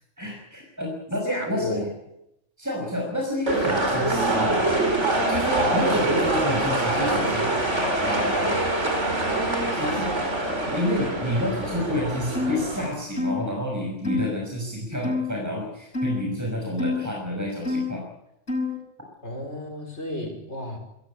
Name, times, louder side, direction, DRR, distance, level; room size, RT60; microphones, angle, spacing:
voice 1, 0.2-1.9 2.6-4.6 5.3-7.5 8.0-8.6 9.7-10.1 10.7-18.0, left 1 dB, 15° right, -1 dB, 5.9 m, -29 dB
voice 2, 1.2-1.8 5.6-6.3 19.2-20.8, equal, 70° left, 4 dB, 5.7 m, -32 dB
sound 1, 3.5-12.9, right 2 dB, 80° right, 4.7 m, -24 dB
sound 2, 12.3-12.6 13.2-13.4 14.0-14.3 15.0-15.3 15.9-16.2 16.8-17.0 17.6-17.9 18.5-18.8, left 3 dB, 85° left, 6.3 m, -26 dB
26.5 x 15.5 x 9.8 m, 0.83 s
omnidirectional pair, 1.2 m